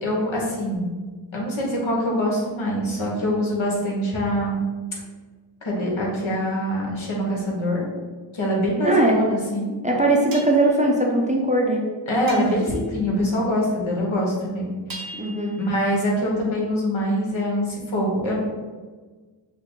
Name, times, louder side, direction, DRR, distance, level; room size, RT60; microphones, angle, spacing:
voice 1, 0.0-0.9 1.3-4.6 5.6-7.8 8.3-9.7 12.1-14.7 15.0-15.1 15.6-18.4, equal, 70° left, -3 dB, 1.3 m, -24 dB
sound 1, 8.4-8.6 10.3-10.7 12.3-12.9 14.9-15.8, right 3 dB, 45° right, 0.8 m, -39 dB
voice 2, 8.8-9.1 9.8-11.8 15.2-15.5, right 2 dB, 15° right, -2 dB, 0.7 m, -20 dB
5.5 x 2.1 x 3.8 m, 1.4 s
cardioid pair, 65°, 49 cm